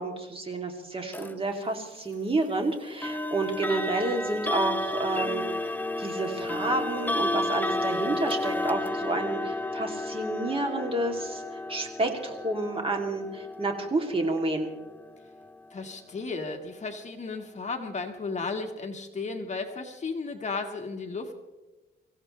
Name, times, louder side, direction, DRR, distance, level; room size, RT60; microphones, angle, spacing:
voice 1, 0.0-5.5 6.0-11.4 11.7-14.7, right 2 dB, 30° right, 3 dB, 2.9 m, -30 dB
sound 1, 1.1-1.3 3.0-15.8, left 1 dB, 10° left, 0.7 m, -32 dB
voice 2, 15.7-21.3, left 4 dB, 40° left, 4 dB, 1.8 m, -34 dB
25.5 x 16.0 x 3.3 m, 1.1 s
cardioid pair, 100°, 19 cm